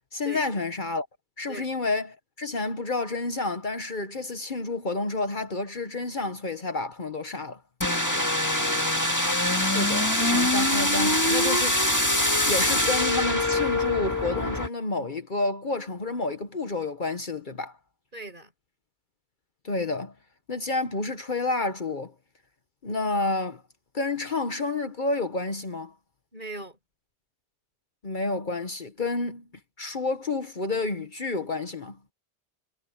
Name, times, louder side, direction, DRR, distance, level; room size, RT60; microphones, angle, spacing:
voice 1, 0.1-1.1 1.4-7.6 9.6-17.8 19.6-20.1 20.5-22.1 22.8-23.6 23.9-25.9 28.0-29.4 29.8-32.0, left 3 dB, 50° left, 1.3 m, -30 dB
sound 1, 7.8-14.7, left 1 dB, 15° left, 2.0 m, -24 dB
voice 2, 7.9-8.3 18.1-18.5 26.3-26.8, right 2 dB, 45° right, 6.8 m, -40 dB
omnidirectional pair, 1.1 m